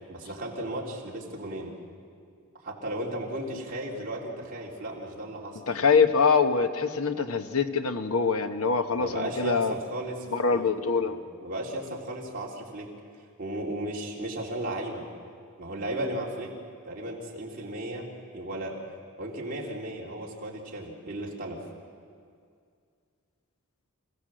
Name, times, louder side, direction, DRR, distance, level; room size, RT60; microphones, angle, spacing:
voice 1, 0.1-1.7 2.6-5.6 8.9-12.9 13.4-15.1 15.6-16.5 16.8-18.9 19.2-21.6, right 1 dB, 40° right, -3 dB, 3.5 m, -35 dB
voice 2, 5.7-9.7 10.3-11.1, left 5 dB, 80° left, 8 dB, 1.1 m, -24 dB
27.0 x 16.0 x 7.7 m, 2.3 s
head